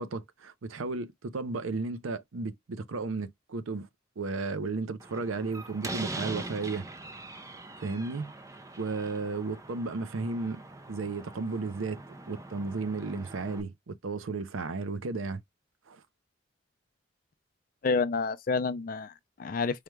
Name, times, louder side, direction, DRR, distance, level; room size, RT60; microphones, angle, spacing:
voice 1, 0.0-3.9 4.2-6.8 7.8-8.3 8.8-10.6 10.9-12.0 12.3-15.4 15.9-16.0, right 3 dB, 90° right, 0.6 m, -34 dB
Slam, 5.0-13.6, right 2 dB, 15° right, 0.4 m, -42 dB
voice 2, 17.8-19.8, left 4 dB, 45° left, 0.4 m, -29 dB
4.8 x 2.2 x 3.1 m
head